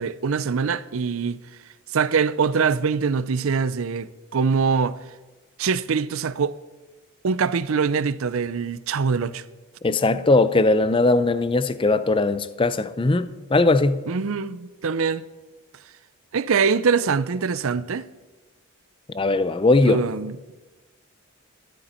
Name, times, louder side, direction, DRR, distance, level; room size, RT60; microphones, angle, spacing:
voice 1, 0.0-1.4 1.9-5.0 5.6-6.5 7.2-9.4 14.1-15.2 16.3-18.0 19.8-20.3, right 5 dB, 70° right, 0.5 m, -23 dB
voice 2, 9.8-14.0 19.1-20.0, left 2 dB, 25° left, 0.4 m, -19 dB
13.0 x 12.5 x 4.4 m
head